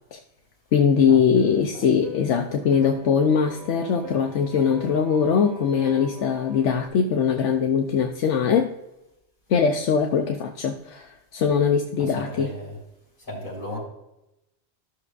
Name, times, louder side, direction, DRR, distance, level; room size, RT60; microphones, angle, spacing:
voice 1, 0.7-8.7 9.5-12.5, left 6 dB, 80° left, 4 dB, 1.0 m, -21 dB
sound 1, 1.4-6.9, left 1 dB, 75° right, 1.6 m, -40 dB
voice 2, 12.0-12.8 13.3-13.8, left 1 dB, 45° left, -5 dB, 3.7 m, -35 dB
14.0 x 6.4 x 2.4 m, 0.89 s
omnidirectional pair, 1.2 m